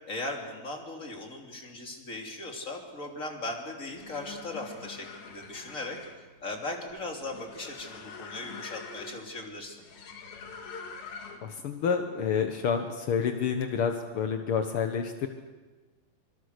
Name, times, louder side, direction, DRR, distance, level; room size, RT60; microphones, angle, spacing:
voice 1, 0.0-6.0 6.4-9.8, left 2 dB, 25° left, 1 dB, 3.2 m, -38 dB
sound 1, 3.8-11.6, left 5 dB, 85° left, 4.0 m, -45 dB
voice 2, 11.4-15.3, left 6 dB, 65° left, 5 dB, 1.3 m, -29 dB
26.0 x 25.5 x 6.7 m, 1.3 s
omnidirectional pair, 4.1 m